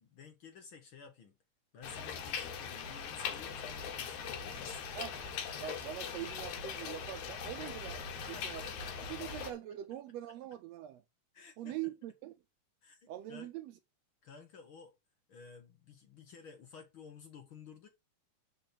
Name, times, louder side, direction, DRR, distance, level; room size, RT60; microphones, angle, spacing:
voice 1, 0.0-1.3 1.7-4.8 8.2-9.4 11.3-11.9 12.8-13.5 14.2-14.9 15.3-17.9, left 5 dB, 55° left, 1.6 m, -53 dB
sound 1, 1.8-9.5, left 6 dB, 75° left, 2.6 m, -41 dB
voice 2, 5.6-8.6 9.1-11.0 11.6-12.3 13.1-13.7, right 13 dB, 75° right, 1.6 m, -43 dB
7.6 x 5.2 x 4.3 m
omnidirectional pair, 3.4 m